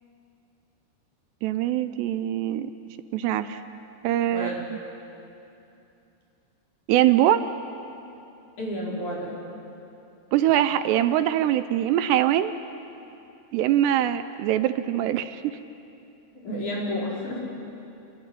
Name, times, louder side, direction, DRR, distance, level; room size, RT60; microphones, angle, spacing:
voice 1, 1.4-2.7 3.1-3.6 4.0-4.8 6.9-7.5 10.3-12.5 13.5-15.6, right 12 dB, 80° right, 11 dB, 2.8 m, -23 dB
voice 2, 8.6-9.3 16.4-17.4, equal, 45° left, -4 dB, 6.2 m, -30 dB
27.5 x 21.5 x 9.9 m, 2.8 s
omnidirectional pair, 5.0 m